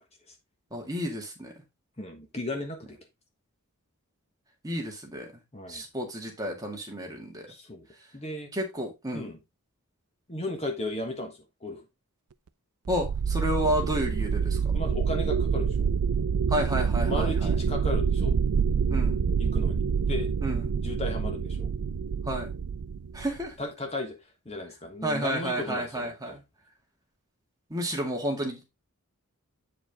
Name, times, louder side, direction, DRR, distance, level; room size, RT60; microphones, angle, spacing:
voice 1, 0.7-1.5 4.6-5.4 5.7-7.5 8.5-9.3 12.9-14.6 16.5-17.5 18.9-19.2 20.4-20.7 22.3-22.5 23.1-23.5 25.0-26.4 27.7-28.6, equal, 15° right, 2.0 m, -31 dB
voice 2, 2.0-3.0 5.5-5.8 7.5-7.9 8.1-8.5 9.1-9.4 10.3-11.3 11.6-11.8 14.7-15.9 17.0-18.3 19.4-19.8 20.1-20.3 20.8-21.7 23.6-24.2 24.4-26.1, left 1 dB, 30° left, 1.4 m, -35 dB
sound 1, 12.9-23.5, right 6 dB, 75° right, 0.4 m, -27 dB
8.6 x 5.0 x 3.5 m
head